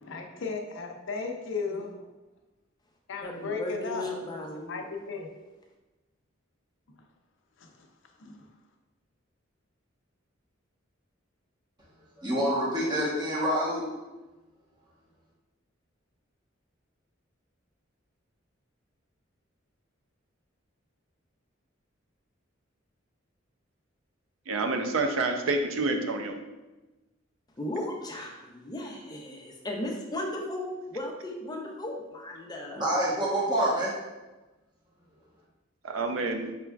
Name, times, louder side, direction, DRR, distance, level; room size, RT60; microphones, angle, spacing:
voice 1, 0.0-2.0 3.1-4.4 4.7-5.3 7.6-7.9 8.2-8.4, left 4 dB, 65° left, 3 dB, 0.5 m, -35 dB
voice 2, 3.2-4.8 27.6-32.8, left 1 dB, 20° left, 0 dB, 0.5 m, -36 dB
voice 3, 12.2-13.9 32.7-33.9, right 1 dB, 20° right, -5 dB, 1.0 m, -27 dB
voice 4, 24.5-26.4 35.8-36.5, right 3 dB, 80° right, 5 dB, 0.5 m, -28 dB
5.1 x 3.4 x 2.3 m, 1.1 s
head